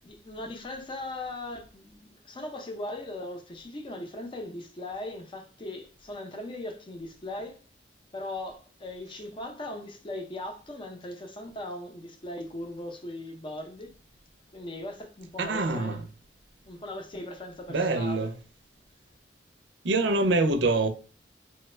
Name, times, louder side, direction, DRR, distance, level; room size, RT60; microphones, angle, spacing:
voice 1, 0.0-7.6 8.1-13.9 14.5-16.0 16.7-18.3, left 1 dB, 30° left, 0.5 m, -39 dB
voice 2, 15.4-16.0 17.7-18.3 19.8-20.9, right 2 dB, 90° right, 0.5 m, -25 dB
3.0 x 2.2 x 3.2 m
head